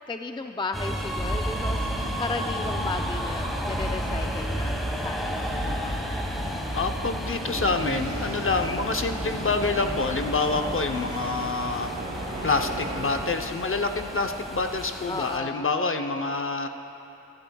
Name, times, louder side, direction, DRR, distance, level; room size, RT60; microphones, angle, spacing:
voice 1, 0.1-6.2 15.1-15.7, left 3 dB, 15° left, 6 dB, 0.4 m, -35 dB
sound 1, 0.7-15.4, equal, ahead, 1.3 m, -32 dB
sound 2, 1.8-11.6, left 1 dB, 70° left, 2.8 m, -43 dB
voice 2, 6.7-11.9 12.4-16.7, left 3 dB, 45° left, 6 dB, 0.8 m, -27 dB
sound 3, 7.4-13.3, right 1 dB, 70° right, 3.1 m, -37 dB
22.0 x 11.5 x 2.3 m, 2.9 s
wide cardioid pair, 75°, 30 cm